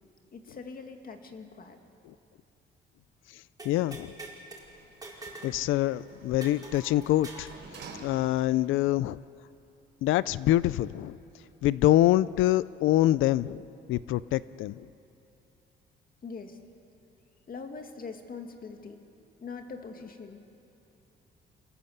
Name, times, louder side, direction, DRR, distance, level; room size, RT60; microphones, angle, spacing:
voice 1, 0.3-1.8 16.2-16.6 17.5-19.0 19.4-20.4, left 4 dB, 45° left, 5 dB, 2.3 m, -42 dB
voice 2, 3.6-4.1 5.4-7.5 8.0-9.2 10.0-11.2 11.6-13.6 13.9-14.9, left 14 dB, 85° left, 18 dB, 0.5 m, -25 dB
sound 1, 3.6-4.6 5.0-5.6 5.8-5.9 6.4-7.5, right 2 dB, 20° right, 5.4 m, -44 dB
Sliding door, 4.6-8.7 9.2-9.3, right 4 dB, 60° right, 4.5 m, -50 dB
26.5 x 18.5 x 8.0 m, 2.8 s
cardioid pair, 90°, 20 cm